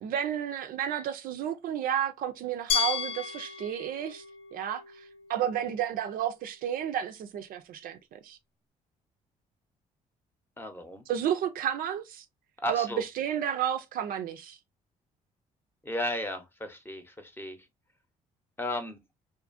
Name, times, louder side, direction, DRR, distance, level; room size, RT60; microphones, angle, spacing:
voice 1, 0.0-4.2 4.5-5.0 5.3-8.4 11.1-12.2 12.7-14.6, right 10 dB, 70° right, 0.4 m, -31 dB
Glass, 2.7-5.6, left 7 dB, 70° left, 0.7 m, -33 dB
voice 2, 10.6-11.0 12.6-13.0 15.8-17.6 18.6-19.0, left 1 dB, 15° left, 0.7 m, -34 dB
2.5 x 2.4 x 2.4 m
supercardioid pair, 65°, 15 cm